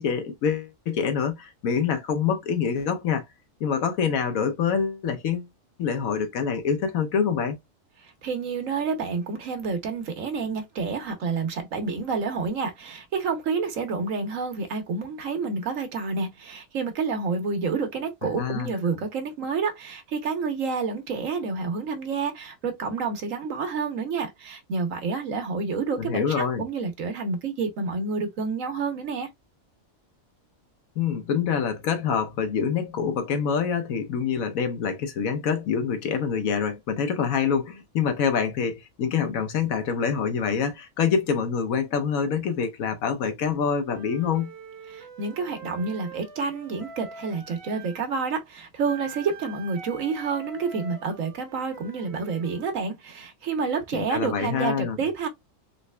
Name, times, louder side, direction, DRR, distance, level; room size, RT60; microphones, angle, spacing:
voice 1, 0.0-3.2 3.6-5.5 5.8-7.6 18.2-18.7 26.0-26.6 31.0-44.5 53.9-55.0, left 6 dB, 80° left, 1.2 m, -26 dB
voice 2, 8.0-29.3 44.9-55.3, right 4 dB, 75° right, 1.3 m, -29 dB
Wind instrument woodwind instrument, 43.8-48.1 48.8-52.7, right 4 dB, 50° right, 1.1 m, -44 dB
3.9 x 3.2 x 2.2 m
omnidirectional pair, 1.4 m